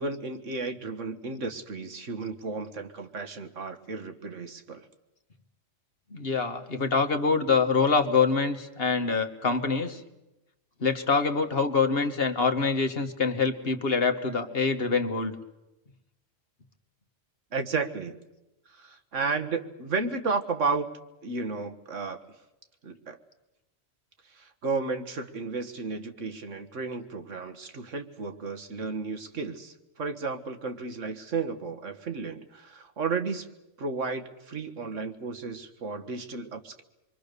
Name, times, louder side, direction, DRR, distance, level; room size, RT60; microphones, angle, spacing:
voice 1, 0.0-4.9 17.5-18.2 18.7-20.9 21.2-22.2 22.8-23.2 24.3-33.5 33.8-36.8, right 4 dB, 75° right, 7 dB, 1.8 m, -33 dB
voice 2, 6.1-10.0 10.8-15.3, left 4 dB, 50° left, 6 dB, 1.7 m, -25 dB
27.0 x 23.0 x 6.8 m, 0.97 s
omnidirectional pair, 1.3 m